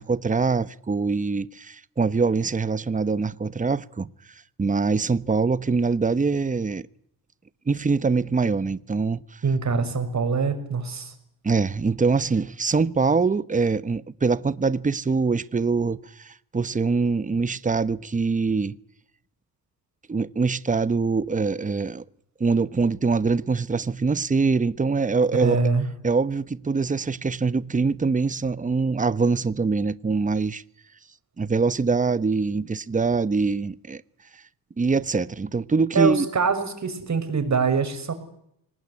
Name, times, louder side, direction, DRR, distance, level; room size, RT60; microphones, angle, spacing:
voice 1, 0.0-4.1 4.6-6.9 7.7-9.4 11.4-18.8 20.1-22.0 22.4-25.6 26.0-30.6 31.4-34.0 34.8-36.3, right 4 dB, 20° right, 1.0 m, -23 dB
voice 2, 9.4-11.1 25.3-25.9 35.9-38.1, right 5 dB, 45° right, 6.2 m, -24 dB
25.5 x 19.0 x 9.8 m
cardioid pair, 90°, 37 cm